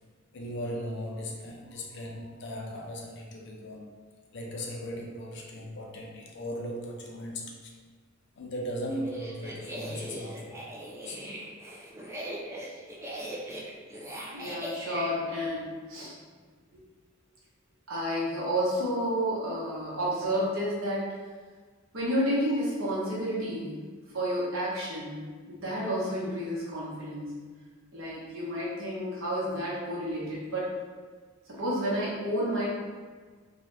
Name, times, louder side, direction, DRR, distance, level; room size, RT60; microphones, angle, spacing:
voice 1, 0.3-3.9 4.3-7.7 8.4-10.7 10.9-11.2, equal, 55° left, -1 dB, 0.5 m, -38 dB
sound 1, 8.9-15.1, right 1 dB, 15° right, 0.3 m, -40 dB
voice 2, 14.3-16.2 16.7-16.8 17.9-21.1 21.9-23.8 24.1-27.4 27.9-30.7 31.5-32.7, equal, 75° right, -7 dB, 0.9 m, -31 dB
2.7 x 2.3 x 3.1 m, 1.5 s
head